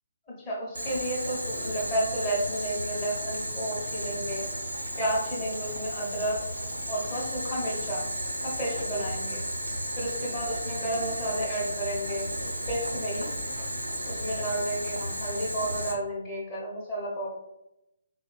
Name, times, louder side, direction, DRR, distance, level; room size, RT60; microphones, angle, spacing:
voice 1, 0.5-4.5 5.0-6.4 6.9-8.1 8.4-9.4 10.0-13.3 13.6-13.7 14.0-17.3, right 1 dB, 20° left, -7 dB, 0.9 m, -32 dB
Boiling, 0.7-15.9, equal, 80° right, 0.6 m, -34 dB
3.8 x 2.1 x 2.3 m, 0.90 s
figure-of-eight pair, 135°, 0 cm